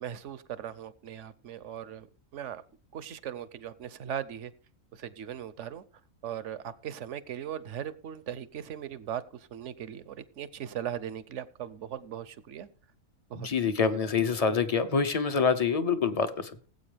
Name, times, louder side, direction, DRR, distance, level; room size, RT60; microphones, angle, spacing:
voice 1, 0.0-2.1 2.3-2.6 2.9-4.5 5.0-5.8 6.2-9.2 9.5-12.7 13.3-13.5 13.9-14.1, right 10 dB, 65° right, 16 dB, 1.1 m, -38 dB
voice 2, 13.3-16.7, left 5 dB, 30° left, 10 dB, 0.8 m, -26 dB
19.5 x 8.3 x 3.4 m, 0.43 s
omnidirectional pair, 1.4 m